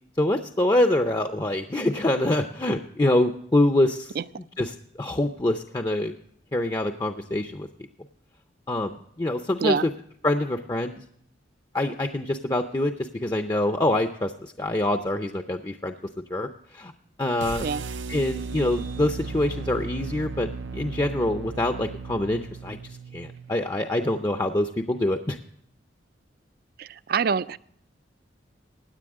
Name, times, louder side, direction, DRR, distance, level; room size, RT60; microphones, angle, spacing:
voice 1, 0.2-4.1 4.6-6.1 6.5-7.7 8.7-9.9 10.2-11.0 11.7-15.9 16.3-16.9 17.2-17.7 18.1-22.8 23.1-25.4, left 1 dB, 20° left, 6 dB, 0.6 m, -25 dB
sound 1, 17.4-23.5, right 4 dB, 85° right, 0.7 m, -36 dB
voice 2, 26.8-27.6, right 5 dB, 55° right, 17 dB, 0.4 m, -25 dB
16.5 x 10.0 x 3.6 m, 0.67 s
head